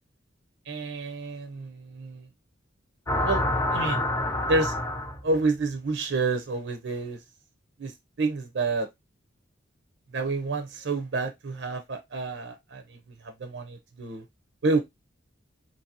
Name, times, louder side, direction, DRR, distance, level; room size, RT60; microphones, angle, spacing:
voice 1, 0.7-2.3 3.2-3.4 3.7-4.0 4.5-4.8 5.2-7.2 7.8-8.9 10.1-12.8 13.2-14.2 14.6-14.8, right 3 dB, 70° right, 0.5 m, -29 dB
sound 1, 3.1-5.4, left 1 dB, 15° left, 0.3 m, -27 dB
2.7 x 2.6 x 2.7 m
head